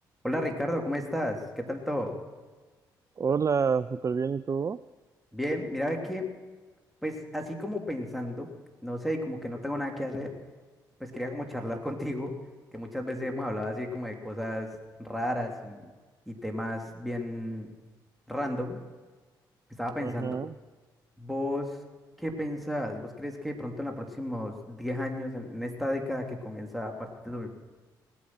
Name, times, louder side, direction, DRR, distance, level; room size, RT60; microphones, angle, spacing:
voice 1, 0.2-2.2 5.3-6.2 7.0-8.5 8.8-10.3 11.0-12.3 12.7-14.7 15.0-15.9 16.3-17.7 18.3-18.8 19.8-20.3 21.2-21.8 22.2-27.5, left 1 dB, ahead, 1 dB, 3.0 m, -33 dB
voice 2, 3.2-4.8 20.0-20.5, right 6 dB, 30° right, 15 dB, 0.4 m, -28 dB
19.0 x 8.6 x 6.2 m, 1.4 s
hypercardioid pair, 45°, 10 cm